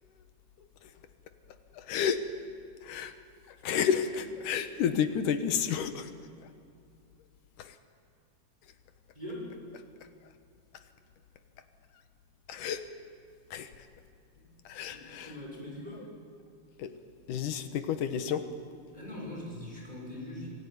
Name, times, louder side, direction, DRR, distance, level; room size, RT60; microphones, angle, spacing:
voice 1, 1.9-2.3 2.8-3.1 3.6-6.1 7.6-7.7 12.5-12.8 13.5-13.7 14.7-15.3 16.8-16.9 17.3-18.5, left 7 dB, 75° left, 9 dB, 2.7 m, -30 dB
voice 2, 9.1-9.5 14.4-14.5 14.9-16.1 18.9-20.5, left 1 dB, 10° right, -3 dB, 6.4 m, -42 dB
27.0 x 18.5 x 9.5 m, 2.3 s
omnidirectional pair, 3.7 m